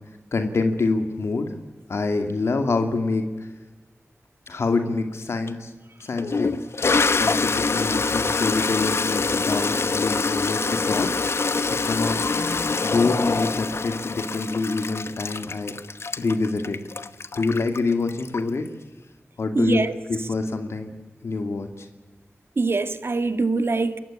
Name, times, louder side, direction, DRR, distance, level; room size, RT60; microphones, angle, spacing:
voice 1, 0.3-1.5 1.9-3.2 4.5-5.7 6.0-6.5 7.2-11.1 11.7-12.2 12.8-15.8 16.2-16.8 17.4-18.6 19.4-19.8 20.1-20.9 21.2-21.9, left 3 dB, 90° left, 2.4 m, -26 dB
Toilet flush, 5.5-5.6 6.2-18.7, left 4 dB, 75° left, 1.0 m, -25 dB
voice 2, 19.6-19.9 22.6-24.0, right 3 dB, 65° right, 1.7 m, -23 dB
29.0 x 15.0 x 8.7 m
wide cardioid pair, 55°, 4 cm